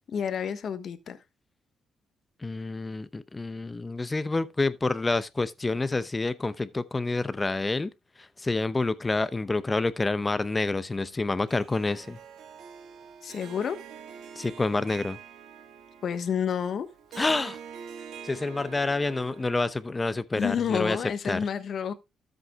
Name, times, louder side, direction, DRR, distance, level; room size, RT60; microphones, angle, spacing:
voice 1, 0.1-1.2 13.2-13.8 16.0-16.9 20.3-21.9, left 7 dB, 60° left, 1.2 m, -29 dB
voice 2, 2.4-7.9 8.4-12.2 14.4-15.2 17.2-17.6 18.2-21.0 21.2-21.4, left 3 dB, 20° left, 0.7 m, -28 dB
Harp, 11.5-19.9, right 7 dB, 80° right, 1.7 m, -45 dB
13.0 x 7.9 x 2.3 m
cardioid pair, 90°, 0 cm